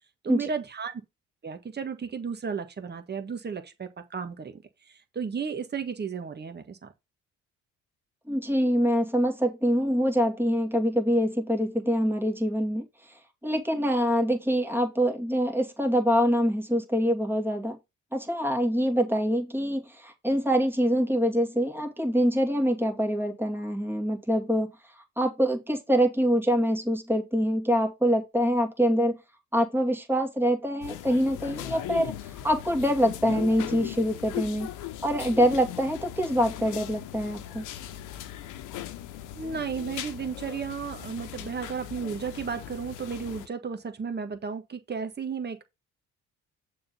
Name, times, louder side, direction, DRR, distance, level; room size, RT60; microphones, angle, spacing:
voice 1, 0.2-0.9 1.4-6.9 39.4-45.6, right 6 dB, 35° right, 1.5 m, -34 dB
voice 2, 8.3-12.9 13.4-17.8 18.1-24.7 25.2-29.2 29.5-32.1 32.4-34.7 35.0-37.6, equal, 5° right, 2.3 m, -25 dB
sound 1, 30.8-43.5, left 12 dB, 85° left, 0.9 m, -39 dB
6.8 x 3.9 x 5.3 m
supercardioid pair, 75°, 30 cm